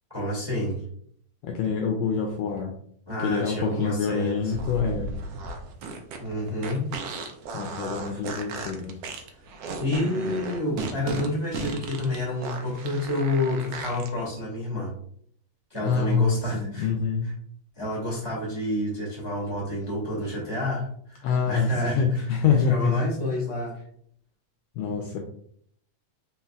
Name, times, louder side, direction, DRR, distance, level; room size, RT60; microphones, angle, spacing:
voice 1, 0.1-0.8 3.1-4.5 6.2-6.8 9.8-14.9 15.7-16.9 17.7-22.0 22.7-23.7, left 1 dB, 15° right, -5 dB, 1.1 m, -29 dB
voice 2, 1.4-2.7 3.2-5.1 7.5-8.9 15.8-17.3 21.2-23.0 24.8-25.2, left 5 dB, 80° left, 3 dB, 1.6 m, -25 dB
sound 1, 4.5-14.1, right 3 dB, 80° right, 1.4 m, -35 dB
4.3 x 3.8 x 2.3 m, 0.64 s
omnidirectional pair, 3.3 m